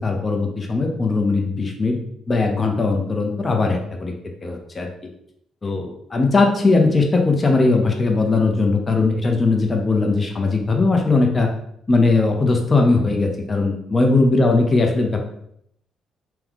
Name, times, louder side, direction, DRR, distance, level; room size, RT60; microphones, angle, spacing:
voice 1, 0.0-2.0 2.3-4.1 4.4-4.9 5.6-11.5 11.9-15.2, left 3 dB, 30° left, 2 dB, 0.8 m, -19 dB
3.6 x 3.0 x 3.6 m, 0.72 s
cardioid pair, 85°, 0 cm